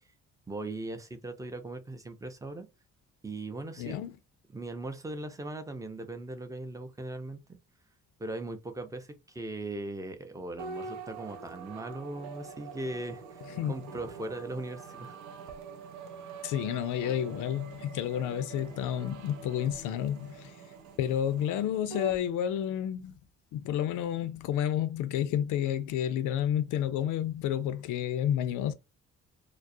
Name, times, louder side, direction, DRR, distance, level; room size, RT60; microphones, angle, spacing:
voice 1, 0.5-2.7 3.2-4.0 4.5-7.6 8.2-15.2, right 2 dB, 10° right, 0.5 m, -39 dB
voice 2, 3.8-4.2 13.5-13.7 16.4-20.5 21.0-23.1 23.5-28.7, left 10 dB, 85° left, 0.5 m, -30 dB
sound 1, 10.6-22.2, right 4 dB, 70° right, 0.5 m, -44 dB
2.4 x 2.0 x 2.6 m
cardioid pair, 90°, 30 cm